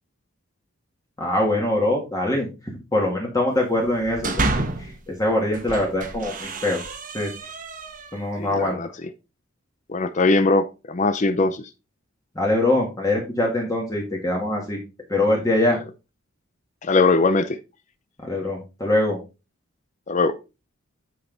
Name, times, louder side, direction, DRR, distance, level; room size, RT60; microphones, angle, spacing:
voice 1, 1.2-2.5 2.9-4.3 4.8-6.8 7.1-7.5 8.1-8.8 12.4-14.8 15.1-15.8 18.2-19.2, left 1 dB, 15° left, -1 dB, 1.8 m, -23 dB
sound 1, 3.9-5.0 5.5-8.3, right 2 dB, 40° right, 1.1 m, -29 dB
voice 2, 8.4-9.1 9.9-11.7 16.8-17.6 20.1-20.4, left 3 dB, 35° left, 11 dB, 0.5 m, -21 dB
8.6 x 5.4 x 4.0 m, 0.29 s
head